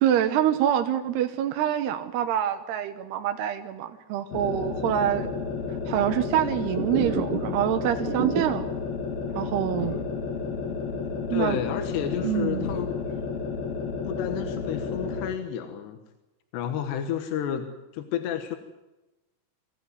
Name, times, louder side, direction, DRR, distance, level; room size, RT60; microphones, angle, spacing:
voice 1, 0.0-5.3 5.9-8.6 9.4-10.0 11.3-11.6 12.2-12.7, right 11 dB, 75° right, 6 dB, 3.1 m, -26 dB
sound 1, 4.3-15.4, left 5 dB, 65° left, 4.0 m, -32 dB
sound 2, 6.8-7.7 7.9-8.8 9.2-9.3 9.7-9.8 10.3-11.7 12.0-12.7, right 4 dB, 50° right, 1.5 m, -33 dB
voice 2, 11.3-13.0 14.1-16.0 16.5-17.7 17.9-18.6, left 9 dB, 85° left, 7 dB, 3.5 m, -31 dB
26.0 x 16.0 x 9.6 m, 1.0 s
omnidirectional pair, 4.8 m